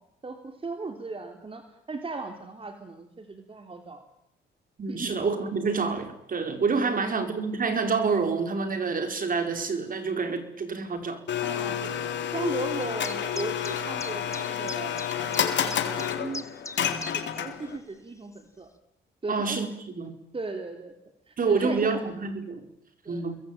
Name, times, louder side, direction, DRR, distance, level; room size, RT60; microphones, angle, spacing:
voice 1, 0.0-1.6 1.9-4.0 4.9-5.2 7.0-7.1 11.4-11.8 12.3-16.4 16.8-18.7 19.2-19.6 20.3-20.9 21.3-22.1 23.0-23.2, right 3 dB, 25° right, 6 dB, 3.3 m, -37 dB
voice 2, 4.8-11.2 19.3-20.1 21.4-22.6 23.1-23.4, right 4 dB, 45° right, 7 dB, 5.0 m, -27 dB
Domestic sounds home sounds, 11.3-17.8, left 9 dB, 65° left, 3.8 m, -29 dB
sound 1, 12.8-17.4 17.7-17.8 18.4-18.5, left 2 dB, 15° left, 2.2 m, -39 dB
28.5 x 22.0 x 9.1 m, 0.79 s
cardioid pair, 90°, 20 cm